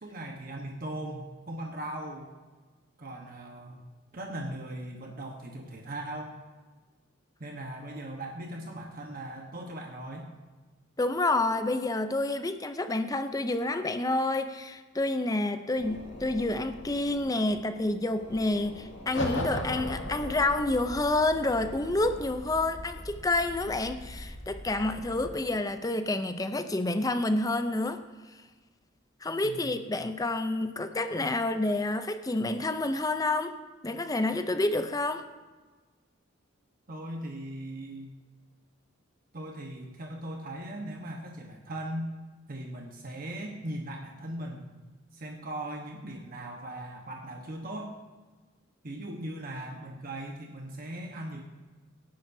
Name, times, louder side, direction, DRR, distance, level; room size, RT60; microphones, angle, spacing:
voice 1, 0.0-2.4 3.0-3.9 4.1-6.4 7.4-10.3 29.4-29.9 36.9-38.2 39.3-42.1 42.5-44.7 45.1-48.0 48.8-51.4, right 1 dB, 45° right, 1 dB, 1.1 m, -39 dB
voice 2, 11.0-28.0 29.2-33.6 33.8-35.2, left 2 dB, 20° left, 9 dB, 0.5 m, -29 dB
sound 1, 15.8-22.3, left 1 dB, 80° left, 2.7 m, -47 dB
sound 2, 19.1-25.3, left 1 dB, 65° left, 2.3 m, -38 dB
18.0 x 10.5 x 2.7 m, 1.3 s
head